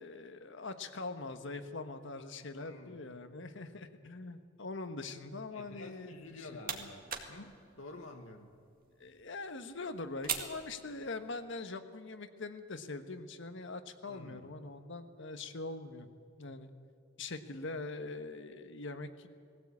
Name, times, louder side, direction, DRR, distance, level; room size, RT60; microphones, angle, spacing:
voice 1, 0.0-6.1 9.0-16.1 16.4-16.7 17.2-19.3, left 3 dB, 65° left, 9 dB, 1.3 m, -43 dB
voice 2, 2.5-3.0 5.5-8.5 14.1-14.5, left 2 dB, 85° left, 3 dB, 1.6 m, -50 dB
sound 1, 6.1-11.5, right 7 dB, 45° right, 1.9 m, -44 dB
20.0 x 16.0 x 8.5 m, 2.4 s
head